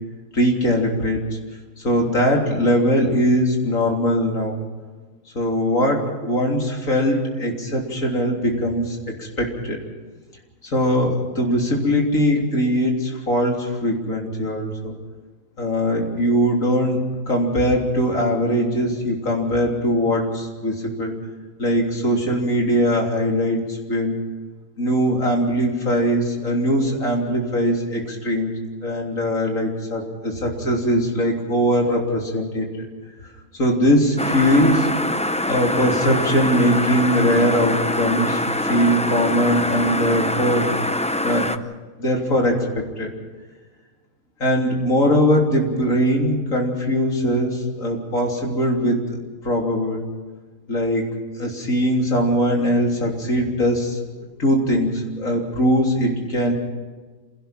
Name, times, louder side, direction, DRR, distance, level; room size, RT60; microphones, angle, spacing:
voice 1, 0.3-1.2 1.8-4.6 5.4-9.8 10.6-15.0 15.6-17.0 17.3-21.2 21.6-24.2 24.8-28.5 28.8-32.7 33.5-34.9 35.5-40.7 41.2-41.5 42.0-43.1 44.4-50.0 50.7-54.0 54.4-56.5, equal, 75° left, 0 dB, 3.9 m, -21 dB
sound 1, 34.2-41.6, left 1 dB, 10° left, 0.3 m, -24 dB
26.5 x 17.0 x 5.9 m, 1.4 s
omnidirectional pair, 1.4 m